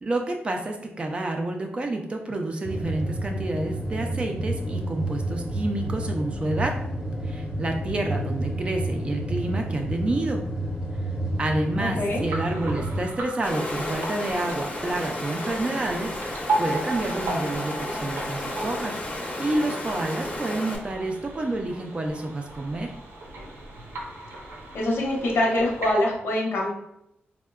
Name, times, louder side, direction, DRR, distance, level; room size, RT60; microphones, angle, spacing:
voice 1, 0.0-6.8 7.2-10.4 11.4-22.9, right 2 dB, 25° right, 3 dB, 0.4 m, -29 dB
sound 1, 2.6-13.0, right 1 dB, 10° right, 0.8 m, -30 dB
voice 2, 11.8-12.2 24.7-26.7, left 1 dB, 90° left, -2 dB, 0.8 m, -24 dB
sound 2, 12.0-25.9, right 2 dB, 90° right, 0.7 m, -36 dB
Water, 13.4-20.8, left 1 dB, 30° left, 0.6 m, -32 dB
4.3 x 2.1 x 2.3 m, 0.81 s
wide cardioid pair, 170°, 4 cm